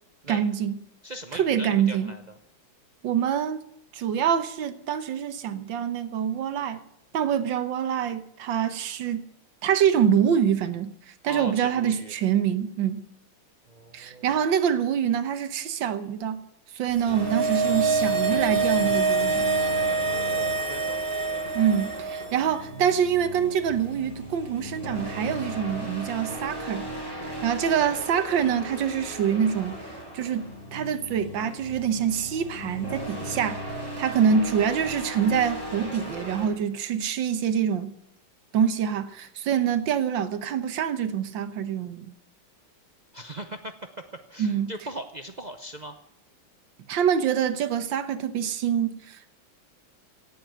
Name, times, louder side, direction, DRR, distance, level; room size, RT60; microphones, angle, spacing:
voice 1, 0.3-0.8 1.3-2.1 3.0-3.6 3.9-6.8 7.1-9.2 9.6-10.9 11.2-13.0 13.9-16.4 16.7-19.5 21.6-26.9 27.1-29.8 30.1-33.6 34.0-37.9 38.5-42.1 44.4-44.7 46.9-49.3, right 8 dB, 70° right, 1.7 m, -25 dB
voice 2, 1.0-2.3 11.3-12.1 13.7-14.4 20.0-21.0 43.1-44.0 44.3-45.9, right 1 dB, 90° right, 0.3 m, -39 dB
sound 1, 17.0-22.5 22.7-22.8, right 4 dB, 50° right, 0.6 m, -26 dB
sound 2, 17.1-36.5, equal, 10° left, 6.9 m, -36 dB
17.0 x 7.2 x 9.3 m
omnidirectional pair, 2.2 m